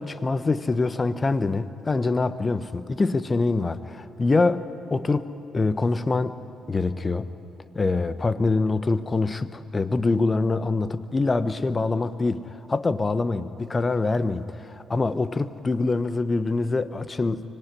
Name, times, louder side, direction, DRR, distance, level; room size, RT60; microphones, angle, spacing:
voice 1, 0.0-5.3 5.5-6.3 6.7-7.3 7.7-17.4, left 3 dB, 30° left, 14 dB, 1.1 m, -24 dB
24.5 x 18.5 x 9.9 m, 2.9 s
hypercardioid pair, 45°, 0 cm